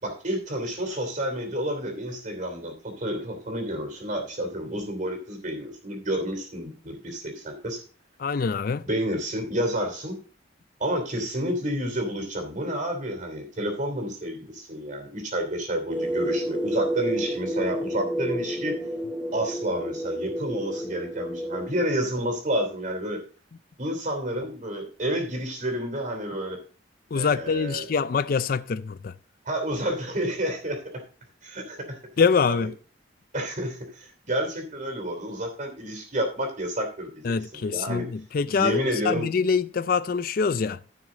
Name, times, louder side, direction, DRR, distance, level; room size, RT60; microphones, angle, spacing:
voice 1, 0.0-7.8 8.8-10.2 10.8-18.7 19.3-23.2 23.8-26.6 27.1-27.8 29.4-30.8 31.4-32.0 32.5-32.7 33.3-38.1 38.5-39.3, equal, 45° right, 3.0 m, -30 dB
voice 2, 8.2-8.9 27.1-29.1 32.2-32.8 37.2-40.8, left 5 dB, 50° left, 0.4 m, -25 dB
sound 1, 15.9-21.7, equal, 10° right, 0.6 m, -30 dB
14.5 x 6.2 x 3.8 m
head